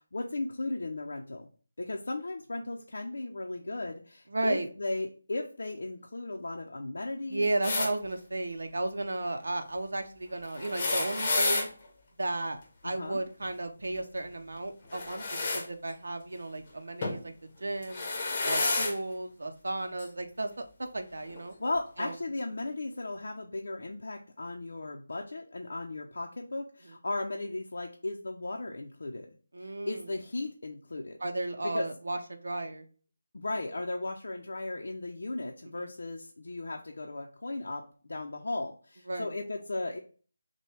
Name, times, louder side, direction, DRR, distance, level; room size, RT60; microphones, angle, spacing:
voice 1, 0.0-1.5 1.8-7.5 12.8-13.2 21.6-29.3 29.6-31.2 31.6-31.9 33.3-40.0, left 2 dB, 70° left, 1 dB, 0.6 m, -36 dB
voice 2, 4.3-4.7 7.3-11.7 12.2-18.1 18.4-20.5 20.8-21.5 22.0-22.1 26.8-26.9 29.5-30.1 31.2-32.8 35.6-35.9 39.1-39.4, right 2 dB, 80° right, 5 dB, 0.7 m, -34 dB
sound 1, 7.6-7.9 10.5-11.7 14.9-15.6 17.0-17.2 17.8-18.9 20.0-20.1 21.3-21.4, left 3 dB, 25° left, 0.8 m, -30 dB
6.2 x 2.2 x 3.3 m, 0.41 s
figure-of-eight pair, 175°, 0 cm